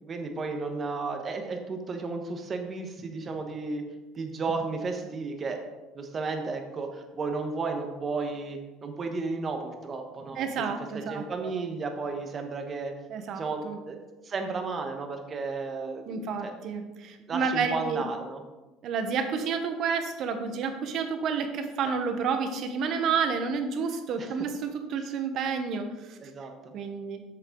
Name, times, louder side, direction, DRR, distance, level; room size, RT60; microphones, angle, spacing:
voice 1, 0.0-3.9 4.2-5.6 5.9-10.4 10.9-12.9 13.3-14.0 14.2-16.5 17.3-18.4 21.8-21.9 24.1-24.3 26.2-26.7, right 4 dB, 35° right, 5 dB, 1.3 m, -33 dB
voice 2, 10.4-11.2 13.1-13.8 16.1-18.0 18.8-26.2 26.7-27.2, right 5 dB, 55° right, 7 dB, 1.1 m, -30 dB
8.2 x 6.7 x 3.9 m, 1.1 s
supercardioid pair, 105°, 0 cm